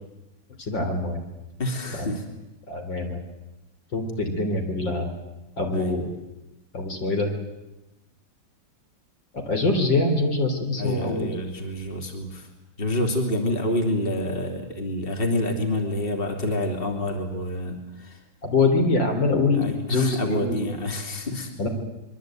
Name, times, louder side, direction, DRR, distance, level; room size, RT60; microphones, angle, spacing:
voice 1, 0.6-1.2 1.9-2.1 2.7-3.2 3.9-5.1 5.6-6.2 6.7-7.3 9.3-11.3 18.4-20.6 21.6-21.7, left 3 dB, 70° left, 4 dB, 4.4 m, -24 dB
voice 2, 1.6-2.2 5.7-5.9 10.8-12.5 12.8-18.2 19.5-21.5, left 1 dB, 25° left, 3 dB, 3.3 m, -27 dB
25.0 x 23.0 x 9.2 m, 0.97 s
omnidirectional pair, 2.1 m